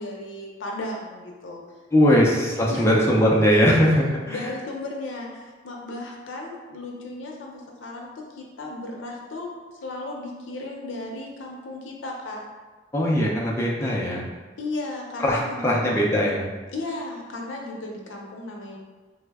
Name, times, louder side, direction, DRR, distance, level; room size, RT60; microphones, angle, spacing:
voice 1, 0.0-1.6 2.1-2.2 2.7-2.9 4.3-9.5 9.8-12.4 14.6-15.8 16.7-18.8, left 2 dB, 80° left, -1 dB, 0.5 m, -35 dB
voice 2, 1.9-4.4 12.9-14.3 15.2-16.5, equal, 15° left, -3 dB, 0.4 m, -20 dB
3.3 x 2.1 x 3.4 m, 1.3 s
head